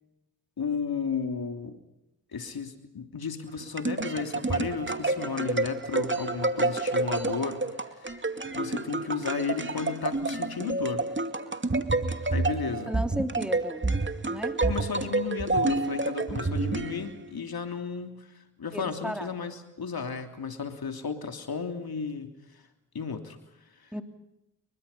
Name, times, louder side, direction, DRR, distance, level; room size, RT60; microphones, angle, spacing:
voice 1, 0.6-1.8 2.3-11.0 12.3-12.9 14.6-18.3 18.6-22.6 22.9-23.4 23.8-23.9, left 5 dB, 60° left, 6 dB, 3.1 m, -34 dB
sound 1, 3.5-17.4, right 2 dB, 30° right, 2.5 m, -29 dB
voice 2, 12.9-13.8 14.3-14.6 18.7-19.3 23.9-24.0, equal, ahead, 6 dB, 3.4 m, -34 dB
30.0 x 24.0 x 5.6 m, 0.92 s
supercardioid pair, 40°, 41 cm